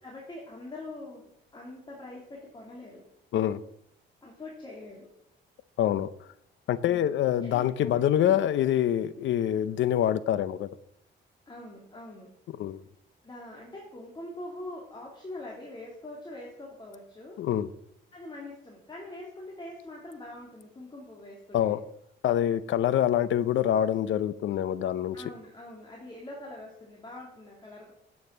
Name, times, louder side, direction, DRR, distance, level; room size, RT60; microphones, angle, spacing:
voice 1, 0.0-3.0 4.2-5.1 7.4-8.5 11.5-12.3 13.2-17.4 18.1-21.8 25.1-27.9, left 2 dB, 25° left, 2.9 m, -44 dB
voice 2, 5.8-6.1 6.7-10.7 12.6-12.8 17.4-17.7 21.5-21.8 22.2-25.2, left 11 dB, 70° left, 0.7 m, -25 dB
9.5 x 7.6 x 7.3 m
cardioid pair, 90°, 20 cm